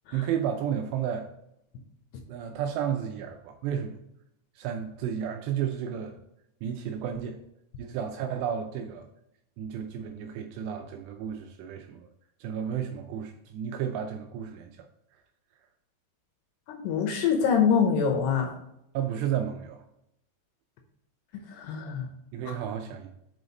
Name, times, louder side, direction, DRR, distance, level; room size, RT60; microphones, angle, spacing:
voice 1, 0.1-1.3 2.3-3.9 4.6-6.2 6.6-7.4 7.8-9.1 9.6-12.1 12.4-14.9 18.9-19.8 22.3-23.1, right 9 dB, 80° right, 4 dB, 2.5 m, -32 dB
voice 2, 16.7-18.5 21.6-22.1, left 6 dB, 75° left, 3 dB, 2.7 m, -24 dB
6.4 x 5.5 x 4.0 m, 0.79 s
omnidirectional pair, 5.4 m